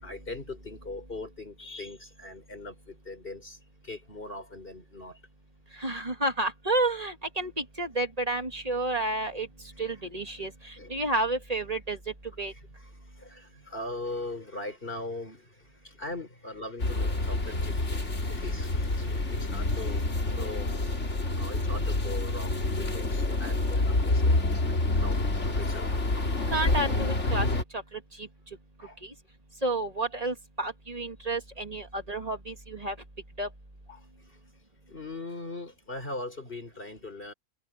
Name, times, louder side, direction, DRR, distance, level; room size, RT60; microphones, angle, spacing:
voice 1, 0.0-3.6 3.8-5.2 9.8-10.0 10.8-11.0 12.5-12.9 13.2-20.7 21.3-24.3 24.6-25.2 25.5-25.9 28.8-29.0 33.9-34.0 34.9-37.3, left 2 dB, 45° left, 4.7 m, -40 dB
voice 2, 5.8-9.5 9.8-12.0 12.4-12.5 26.5-27.5 27.7-28.3 29.0-29.1 29.6-32.9 33.4-33.5, right 2 dB, 30° right, 2.5 m, -30 dB
sound 1, 16.8-27.6, left 2 dB, 65° left, 3.3 m, -27 dB
omnidirectional pair, 1.3 m